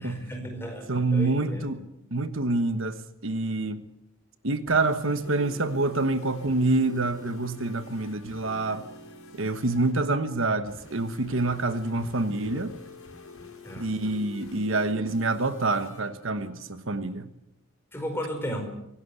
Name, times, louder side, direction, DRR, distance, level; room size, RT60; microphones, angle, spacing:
voice 1, 0.0-1.7 13.6-13.9 17.9-18.6, equal, 10° left, 5.0 m, -35 dB
voice 2, 0.9-1.8 2.1-3.8 4.4-8.8 9.4-12.7 13.8-17.3, right 2 dB, 65° right, 1.3 m, -27 dB
sound 1, 4.5-17.3, left 3 dB, 85° left, 5.8 m, -47 dB
25.0 x 17.5 x 8.2 m
head